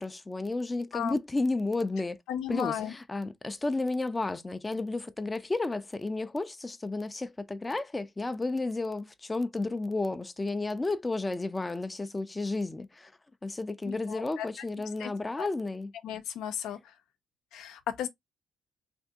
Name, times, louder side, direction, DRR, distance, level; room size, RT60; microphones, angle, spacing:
voice 1, 0.0-2.2 2.5-13.1 13.4-15.9, left 2 dB, 20° left, 0.4 m, -32 dB
voice 2, 2.3-2.9 13.9-14.5 15.0-15.1 15.4-15.5 16.0-16.8 17.5-18.1, left 9 dB, 90° left, 0.5 m, -34 dB
3.4 x 2.5 x 2.7 m
cardioid pair, 90°, 0 cm